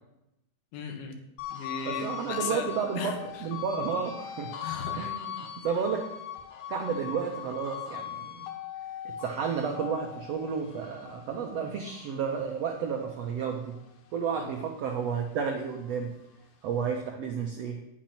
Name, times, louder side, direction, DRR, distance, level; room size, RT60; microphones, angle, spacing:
voice 1, 0.7-1.2 1.5-2.7 3.0-3.2 4.6-5.0 14.4-14.5, left 5 dB, 85° left, 4 dB, 3.3 m, -36 dB
sound 1, 1.4-14.0 14.4-16.1, left 10 dB, 65° left, 2.3 m, -40 dB
voice 2, 1.8-4.5 4.9-6.0 6.7-8.5 9.0-13.8 14.1-16.1 16.6-17.8, right 6 dB, 80° right, 2 dB, 1.4 m, -32 dB
10.0 x 7.4 x 5.9 m, 0.87 s
omnidirectional pair, 4.2 m